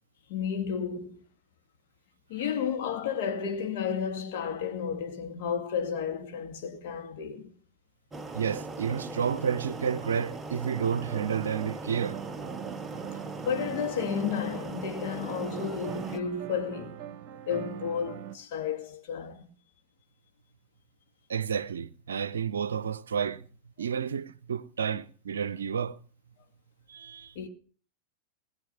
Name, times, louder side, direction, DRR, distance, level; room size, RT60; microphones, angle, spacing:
voice 1, 0.3-1.2 2.3-7.5 13.4-17.0 17.5-19.5 27.4-27.5, left 7 dB, 50° left, 2.2 m, -32 dB
sound 1, 8.1-16.2, right 3 dB, 10° right, 0.8 m, -39 dB
voice 2, 8.3-12.2 21.3-23.5 23.8-26.0 26.9-27.3, right 7 dB, 70° right, 0.6 m, -31 dB
sound 2, 10.8-18.4, right 11 dB, 40° right, 1.1 m, -42 dB
20.0 x 7.4 x 5.8 m
figure-of-eight pair, 90°, 0 cm